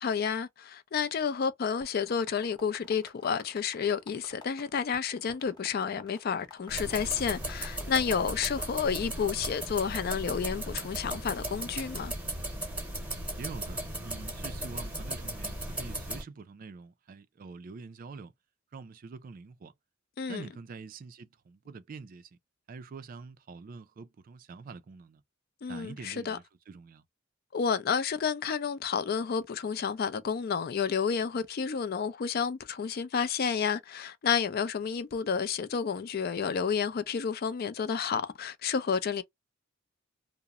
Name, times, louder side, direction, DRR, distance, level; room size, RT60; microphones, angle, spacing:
voice 1, 0.0-12.1 20.2-20.5 25.6-26.4 27.5-39.2, left 6 dB, 50° left, 0.4 m, -30 dB
sound 1, 1.8-9.3, left 3 dB, 20° left, 0.7 m, -52 dB
sound 2, 6.7-16.2, right 1 dB, 5° right, 0.9 m, -37 dB
voice 2, 13.4-18.3 18.7-19.7 20.3-22.4 22.7-25.2 25.6-27.0, right 4 dB, 45° right, 0.3 m, -45 dB
2.8 x 2.0 x 2.3 m
head